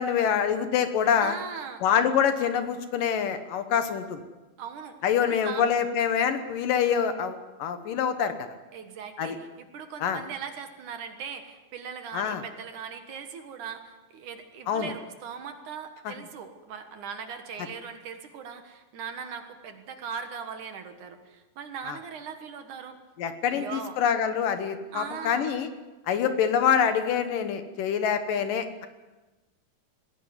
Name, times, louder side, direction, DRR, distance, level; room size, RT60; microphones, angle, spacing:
voice 1, 0.0-1.4 1.8-4.2 5.0-8.3 9.2-9.4 10.0-10.2 12.1-12.4 14.7-14.9 16.1-16.2 21.9-22.0 23.2-25.7 26.1-28.9, left 8 dB, 70° left, 9 dB, 2.6 m, -25 dB
voice 2, 1.2-1.8 4.6-5.0 5.3-5.7 8.7-23.0 23.5-23.9 24.9-25.6, right 6 dB, 60° right, 7 dB, 2.7 m, -39 dB
20.5 x 16.5 x 9.6 m, 1.2 s
omnidirectional pair, 4.3 m